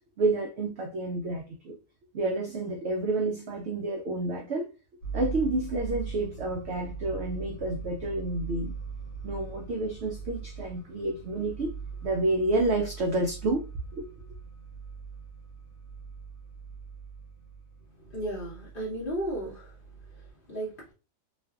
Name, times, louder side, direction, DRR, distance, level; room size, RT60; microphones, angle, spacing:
voice 1, 0.2-1.7 2.1-4.7 5.1-8.7 9.2-11.7 12.0-13.6 13.9-14.1, right 2 dB, 75° right, 0.6 m, -29 dB
sound 1, 5.0-20.3, right 5 dB, 80° left, 1.2 m, -41 dB
voice 2, 18.0-19.8 20.1-20.9, right 1 dB, 45° left, 0.8 m, -35 dB
2.5 x 2.4 x 2.2 m
omnidirectional pair, 1.6 m